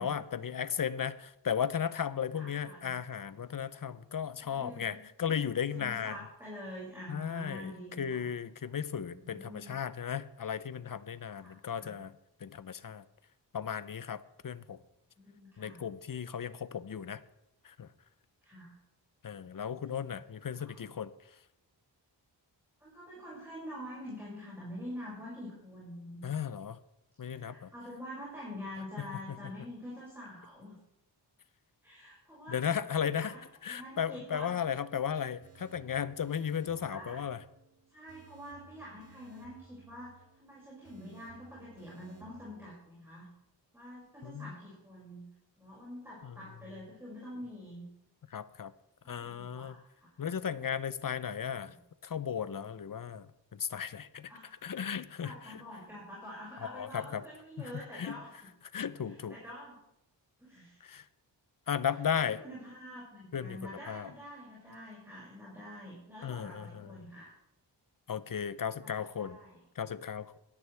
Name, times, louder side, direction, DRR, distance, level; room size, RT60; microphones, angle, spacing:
voice 1, 0.0-6.2 7.1-12.1 12.4-13.0 13.5-14.8 15.6-17.2 17.6-17.9 19.2-21.1 26.2-26.8 27.2-27.7 29.0-29.1 32.5-33.3 33.6-37.4 44.2-44.5 46.2-46.3 48.3-48.7 49.1-49.8 50.2-51.7 52.0-53.3 53.5-54.3 54.6-55.6 56.6-57.2 57.6-58.2 58.7-59.4 60.8-61.0 61.7-62.4 63.3-64.1 66.2-66.9 68.1-69.4 69.8-70.4, left 8 dB, 50° left, 15 dB, 0.8 m, -35 dB
voice 2, 2.3-2.9 4.4-5.0 5.7-8.3 9.1-9.8 11.4-12.0 15.2-15.8 18.4-18.8 20.5-20.8 22.8-26.2 27.2-30.7 31.8-32.6 33.0-33.4 33.7-34.6 36.8-37.2 37.9-43.3 43.7-45.3 45.6-47.9 49.0-50.2 51.6-51.8 54.3-54.5 55.2-58.4 59.0-59.8 60.4-60.8 62.1-67.3 68.8-69.6, equal, 5° right, -7 dB, 6.5 m, -46 dB
sound 1, 35.4-42.6, right 5 dB, 30° right, 2.8 m, -59 dB
18.0 x 12.5 x 3.5 m, 0.82 s
wide cardioid pair, 85°, 44 cm